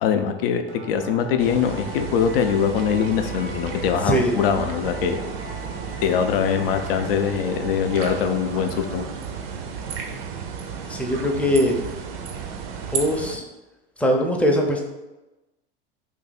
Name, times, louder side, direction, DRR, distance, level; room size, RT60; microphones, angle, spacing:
voice 1, 0.0-5.2 6.0-9.1, left 7 dB, 70° left, 7 dB, 0.5 m, -22 dB
sound 1, 0.7-9.6, right 1 dB, 85° right, 0.9 m, -39 dB
sound 2, 1.4-13.4, right 7 dB, 65° right, 0.6 m, -33 dB
voice 2, 10.9-11.8 12.9-13.4 14.0-14.8, equal, 5° left, 1 dB, 0.5 m, -21 dB
2.7 x 2.6 x 4.0 m, 1.1 s
hypercardioid pair, 80°, 30 cm